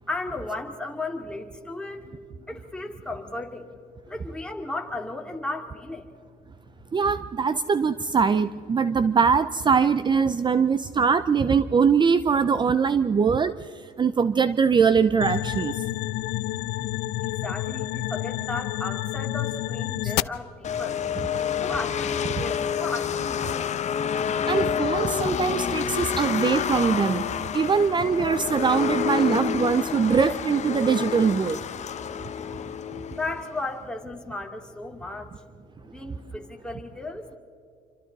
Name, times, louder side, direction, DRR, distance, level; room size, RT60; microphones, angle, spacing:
voice 1, 0.1-2.0 2.5-3.7 4.0-6.1 17.2-21.0 21.6-23.7 33.1-35.3 35.8-37.4, left 2 dB, 5° left, 2 dB, 2.5 m, -35 dB
voice 2, 6.9-15.8 20.0-20.1 24.3-31.6, right 6 dB, 25° right, 13 dB, 0.6 m, -22 dB
independent pink noise ringa, 15.2-20.2, left 16 dB, 90° left, 0.5 m, -29 dB
sound 1, 20.6-33.7, left 8 dB, 45° left, 1.0 m, -28 dB
27.5 x 25.5 x 4.1 m, 2.4 s
cardioid pair, 110°, 17 cm